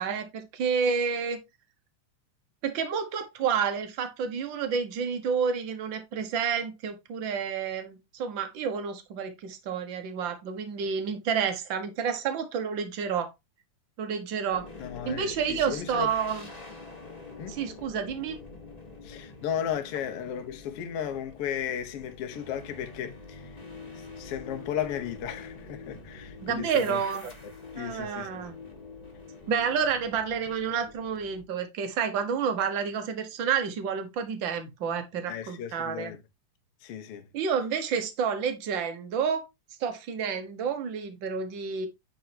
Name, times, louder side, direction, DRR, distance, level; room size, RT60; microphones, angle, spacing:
voice 1, 0.0-1.4 2.6-13.3 14.0-14.7 15.0-16.4 17.5-18.4 26.4-27.3 27.7-28.5 29.5-36.1 37.3-39.4 39.8-41.9, right 6 dB, 55° right, 1.4 m, -29 dB
sound 1, 14.5-31.4, left 3 dB, 25° left, 0.8 m, -45 dB
voice 2, 14.8-16.1 17.4-17.6 19.0-23.5 23.9-27.0 27.8-28.4 35.3-36.2 36.8-37.3, left 9 dB, 60° left, 1.7 m, -35 dB
9.5 x 4.2 x 2.8 m
omnidirectional pair, 3.6 m